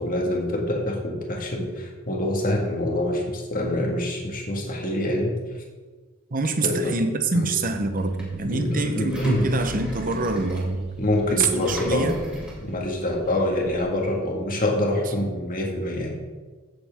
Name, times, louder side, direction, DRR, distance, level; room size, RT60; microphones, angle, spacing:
voice 1, 0.0-5.4 6.6-7.0 7.3-7.5 8.4-9.5 11.0-12.1 12.6-16.1, left 1 dB, 40° left, 0 dB, 1.8 m, -25 dB
voice 2, 6.3-10.9 11.3-12.2, right 3 dB, 40° right, 7 dB, 0.9 m, -25 dB
Engine, 7.7-13.8, equal, 5° right, 2.6 m, -39 dB
15.5 x 7.4 x 3.6 m, 1.4 s
head